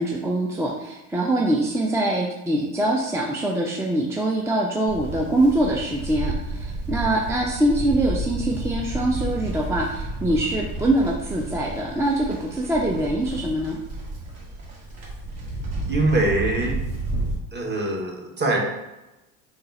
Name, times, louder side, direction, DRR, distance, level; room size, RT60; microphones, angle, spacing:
voice 1, 0.0-13.8, right 1 dB, 5° right, -1 dB, 0.4 m, -24 dB
Livestock farm animals working animals, 4.9-17.3, right 2 dB, 60° right, 1.5 m, -31 dB
voice 2, 15.8-16.7 17.5-18.6, right 2 dB, 25° right, 0 dB, 1.0 m, -23 dB
3.8 x 2.4 x 4.0 m, 0.98 s
hypercardioid pair, 85°, 39 cm